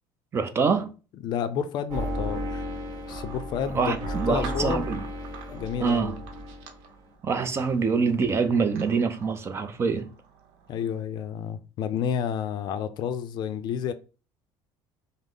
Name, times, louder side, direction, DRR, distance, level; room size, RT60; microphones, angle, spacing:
voice 1, 0.3-0.9 3.7-5.0 5.8-6.2 7.2-10.1, right 5 dB, 25° right, 0.5 m, -25 dB
voice 2, 1.2-2.6 3.1-3.9 4.3-4.9 5.5-6.2 10.7-13.9, left 8 dB, 50° left, 0.5 m, -30 dB
sound 1, 1.9-6.8, equal, 50° right, 1.3 m, -34 dB
sound 2, 3.1-10.9, right 6 dB, 85° right, 0.8 m, -47 dB
5.2 x 2.0 x 3.8 m
cardioid pair, 135°, 9 cm